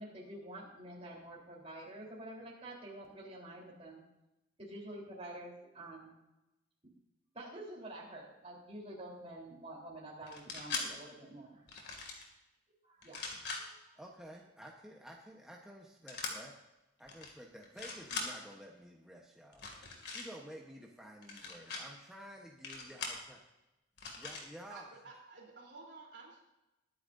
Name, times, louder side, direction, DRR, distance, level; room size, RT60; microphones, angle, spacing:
voice 1, 0.0-4.0 4.6-6.1 6.8-6.9 7.3-11.7 12.8-14.0, right 1 dB, 35° right, -3 dB, 3.7 m, -48 dB
sound 1, 10.3-10.9 11.7-12.2 13.0-13.6 16.1-16.3 17.1-17.3 17.6-18.3 19.5-20.3 21.2-21.8 22.6-23.2 24.0-24.4, left 4 dB, 60° left, 2.4 m, -41 dB
voice 2, 14.0-16.6 17.0-23.4 24.2-24.9, equal, 5° right, -1 dB, 1.0 m, -52 dB
voice 3, 24.7-26.4, right 3 dB, 65° right, -2 dB, 3.4 m, -52 dB
21.0 x 10.0 x 2.7 m, 0.95 s
head